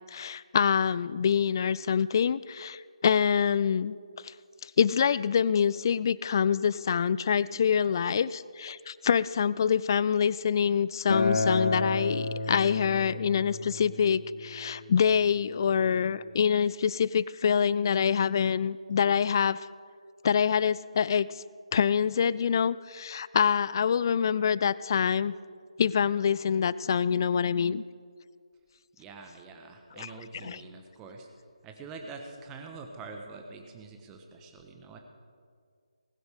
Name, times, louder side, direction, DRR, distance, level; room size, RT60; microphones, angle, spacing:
voice 1, 0.1-4.0 4.2-4.3 4.6-19.6 20.2-21.4 21.7-25.3 25.8-27.8 30.0-30.1 30.4-30.6, left 7 dB, 40° left, 19 dB, 0.3 m, -26 dB
Acoustic guitar, 11.1-16.3, left 2 dB, 70° left, 1.9 m, -32 dB
voice 2, 29.0-31.3 31.6-35.0, right 4 dB, 15° right, 3 dB, 1.3 m, -45 dB
19.5 x 10.0 x 5.0 m, 2.1 s
figure-of-eight pair, 155°, 3 cm